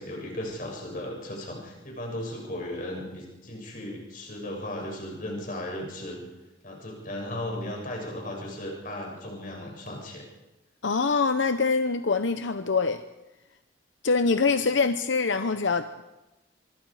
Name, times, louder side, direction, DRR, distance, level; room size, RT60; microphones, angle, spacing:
voice 1, 0.0-6.2 6.6-10.2 14.6-14.7, left 1 dB, 45° left, 0 dB, 6.9 m, -36 dB
voice 2, 10.8-13.0 14.0-16.0, left 4 dB, 85° left, 9 dB, 0.8 m, -24 dB
25.0 x 23.5 x 4.9 m, 1.0 s
head